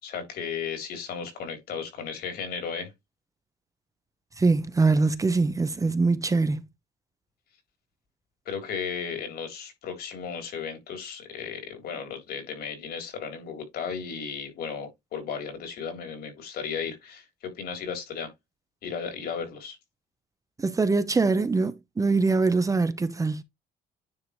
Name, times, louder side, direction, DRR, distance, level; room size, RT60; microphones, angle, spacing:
voice 1, 0.0-2.9 8.5-18.3 18.8-19.8, left 6 dB, 70° left, 3.6 m, -35 dB
voice 2, 4.4-6.6 20.6-23.4, right 3 dB, 20° right, 0.8 m, -23 dB
9.8 x 3.8 x 3.2 m
cardioid pair, 110°, 17 cm